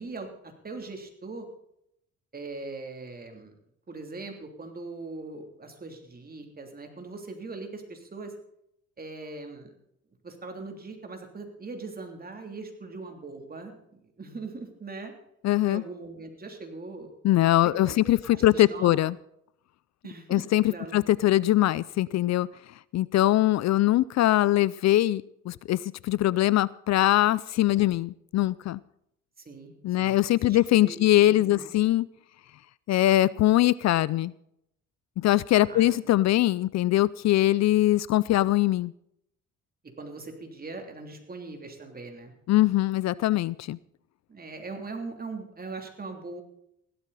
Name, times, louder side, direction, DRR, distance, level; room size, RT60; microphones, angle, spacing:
voice 1, 0.0-1.5 2.3-3.5 3.9-8.3 9.0-9.7 10.2-15.1 15.6-17.1 17.9-18.9 20.0-21.0 29.4-30.6 30.8-31.0 31.3-31.7 35.7-36.0 40.0-42.3 44.3-46.4, right 3 dB, 30° right, 4 dB, 3.2 m, -40 dB
voice 2, 15.4-15.8 17.2-19.1 20.3-22.5 22.9-28.8 29.8-32.1 32.9-34.3 35.2-38.9 42.5-43.8, left 15 dB, 60° left, 21 dB, 0.4 m, -22 dB
16.0 x 12.5 x 4.2 m, 0.76 s
cardioid pair, 90°, 30 cm